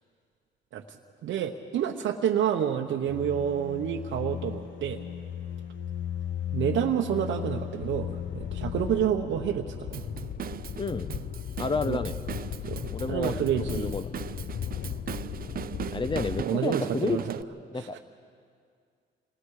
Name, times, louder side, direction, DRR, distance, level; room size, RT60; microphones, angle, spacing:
voice 1, 1.2-5.0 6.5-10.0 11.8-12.0 12.7-13.9 16.4-17.4 17.7-18.0, right 9 dB, 75° right, 2 dB, 1.1 m, -29 dB
sound 1, 3.1-9.0, left 9 dB, 75° left, 1.1 m, -36 dB
sound 2, 7.8-16.5, left 10 dB, 45° left, 0.4 m, -37 dB
Drum kit / Drum, 9.9-17.4, right 9 dB, 45° right, 0.5 m, -39 dB
voice 2, 10.8-11.1 11.6-12.1 12.9-14.1 15.9-17.2 17.7-18.0, left 3 dB, 25° left, 12 dB, 1.0 m, -30 dB
28.5 x 19.5 x 4.9 m, 2.2 s
cardioid pair, 90°, 20 cm